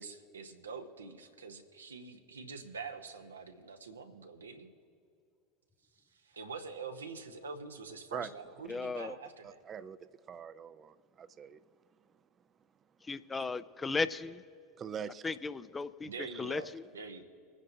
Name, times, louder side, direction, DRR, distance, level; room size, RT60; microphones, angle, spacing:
voice 1, 0.0-4.7 6.1-9.6 16.0-17.2, right 4 dB, 85° right, 0.8 m, -45 dB
voice 2, 8.7-9.1 13.1-14.4 15.2-16.1 16.4-16.8, left 4 dB, 20° left, 0.5 m, -35 dB
voice 3, 9.4-11.6 13.3-13.5 14.8-15.3 16.2-16.7, right 7 dB, 35° right, 0.5 m, -44 dB
24.5 x 9.8 x 2.7 m
hypercardioid pair, 80°, 0 cm